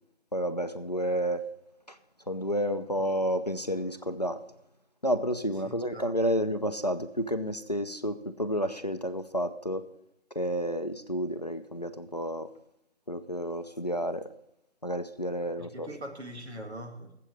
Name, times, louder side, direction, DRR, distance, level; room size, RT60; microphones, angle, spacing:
voice 1, 0.3-1.4 1.9-2.0 2.3-4.4 5.0-9.9 10.4-12.5 13.1-14.3 14.8-15.9, equal, 40° left, 11 dB, 0.5 m, -30 dB
voice 2, 5.6-6.1 15.6-17.2, right 1 dB, 80° right, 3 dB, 2.2 m, -42 dB
7.8 x 7.8 x 8.4 m, 0.80 s
figure-of-eight pair, 175°, 33 cm